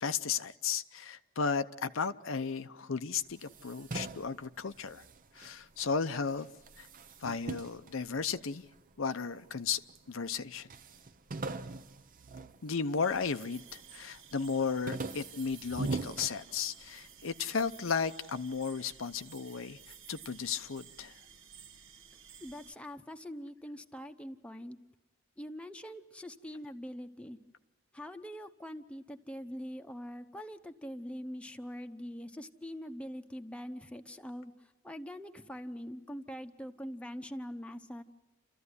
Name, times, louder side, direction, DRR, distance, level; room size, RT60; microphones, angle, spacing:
voice 1, 0.0-5.0 5.4-6.5 6.8-6.9 7.2-8.6 9.0-9.8 10.1-10.7 12.6-19.8 20.1-21.2, left 5 dB, 75° left, 10 dB, 0.7 m, -34 dB
sound 1, 3.3-5.9 6.3-8.8 9.4-10.1 10.3-10.4 10.7-13.3 13.7-14.1 14.5-17.0, right 3 dB, 45° right, 0.8 m, -41 dB
sound 2, 13.0-22.7, right 7 dB, 65° right, 1.3 m, -54 dB
voice 2, 22.4-24.8 25.4-27.4 27.9-34.5 34.8-38.0, equal, 5° left, 6 dB, 1.0 m, -43 dB
29.5 x 14.0 x 9.7 m, 1.1 s
head